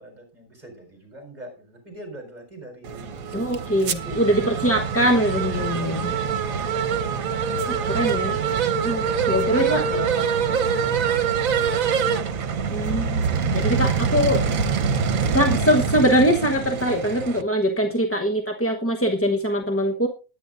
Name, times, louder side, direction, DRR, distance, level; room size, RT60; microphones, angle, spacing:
voice 1, 0.0-5.0 9.0-11.0 17.8-18.0, equal, 30° right, 3 dB, 4.7 m, -40 dB
sound 1, 2.8-17.4, right 6 dB, 75° right, 1.4 m, -24 dB
voice 2, 3.3-6.1 7.7-8.4 8.8-9.8 12.7-13.2 13.5-14.4 15.3-20.1, equal, 10° left, 2 dB, 0.9 m, -22 dB
20.0 x 9.4 x 2.6 m, 0.34 s
omnidirectional pair, 1.5 m